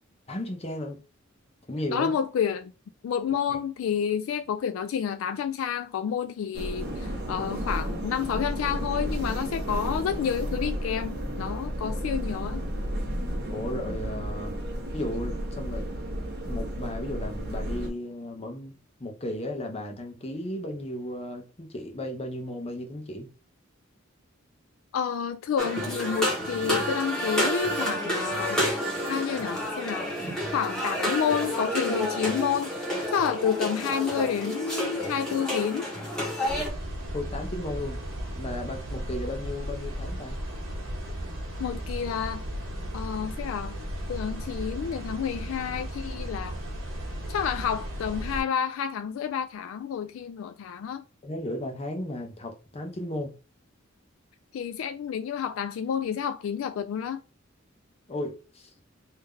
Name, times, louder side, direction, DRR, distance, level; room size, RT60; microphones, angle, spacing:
voice 1, 0.3-1.0 1.7-2.2 3.5-3.6 13.5-14.5 14.9-15.9 16.5-18.7 19.0-23.3 37.1-38.0 38.4-40.4 51.2-53.3 58.1-58.7, left 1 dB, 30° left, 0.8 m, -35 dB
voice 2, 1.9-2.7 3.0-12.6 24.9-28.6 29.1-30.1 30.5-32.7 33.1-35.9 41.6-42.4 42.9-43.8 44.1-46.6 47.3-51.0 54.5-57.2, left 7 dB, 70° left, 0.3 m, -29 dB
sound 1, 6.5-17.9, equal, 55° right, 1.2 m, -32 dB
sound 2, 25.6-36.7, equal, 5° left, 1.3 m, -30 dB
sound 3, 36.5-48.4, equal, 70° right, 1.5 m, -35 dB
3.7 x 2.7 x 3.3 m
head